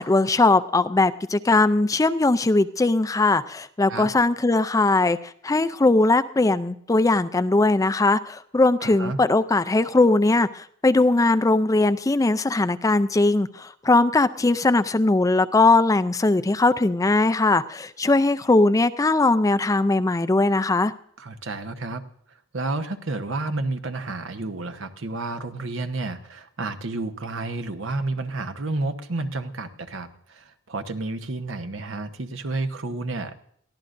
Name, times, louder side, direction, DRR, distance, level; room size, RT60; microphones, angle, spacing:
voice 1, 0.0-20.9, left 2 dB, 15° left, 12 dB, 0.4 m, -20 dB
voice 2, 8.8-9.2 21.2-22.0 22.3-33.4, right 2 dB, 80° right, 9 dB, 1.1 m, -31 dB
22.5 x 14.5 x 2.6 m, 0.66 s
head